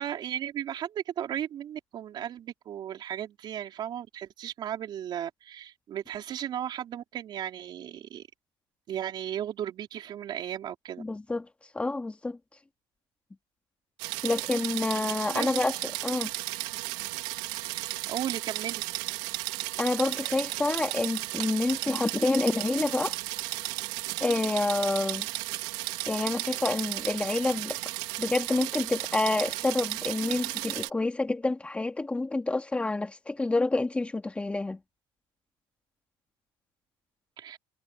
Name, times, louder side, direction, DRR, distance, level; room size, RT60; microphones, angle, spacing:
voice 1, 0.0-8.2 8.9-11.0 15.3-15.6 17.6-18.8 37.4-37.6, right 10 dB, 45° right, 3.8 m, -35 dB
voice 2, 11.0-11.5 11.7-12.4 14.2-15.7 16.0-16.3 19.8-23.1 24.2-25.3 26.1-27.8 28.2-34.8, left 2 dB, 10° left, 2.0 m, -28 dB
sound 1, 14.0-30.9, right 20 dB, 75° right, 2.8 m, -34 dB
cardioid pair, 130°, 11 cm